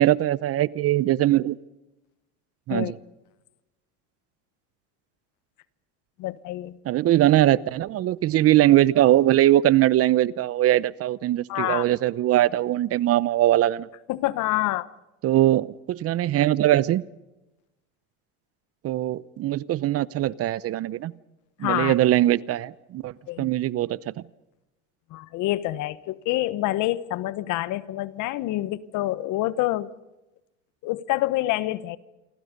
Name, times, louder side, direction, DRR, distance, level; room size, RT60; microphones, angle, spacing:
voice 1, 0.0-1.6 2.7-3.0 6.8-13.9 15.2-17.0 18.8-21.1 21.6-24.1, right 14 dB, 40° right, 20 dB, 0.8 m, -21 dB
voice 2, 6.2-6.8 11.5-11.8 14.1-14.9 21.6-21.9 23.3-23.5 25.1-29.9 30.8-32.0, left 16 dB, 60° left, 16 dB, 1.3 m, -27 dB
28.5 x 24.0 x 5.4 m, 0.98 s
supercardioid pair, 100°, 35 cm